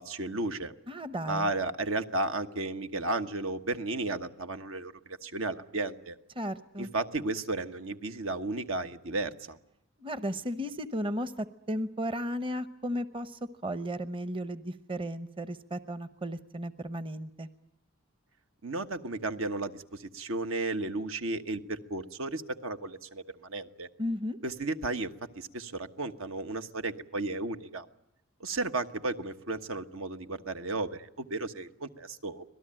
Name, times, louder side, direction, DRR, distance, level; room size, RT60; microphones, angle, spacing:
voice 1, 0.0-0.7 1.3-6.2 6.8-9.6 18.6-23.9 24.4-25.1 25.3-27.8 28.4-32.4, right 2 dB, 80° right, 8 dB, 1.3 m, -34 dB
voice 2, 0.9-1.5 6.4-6.9 10.0-17.5 24.0-24.4, equal, 25° right, 12 dB, 0.9 m, -35 dB
26.0 x 18.0 x 8.9 m, 0.84 s
head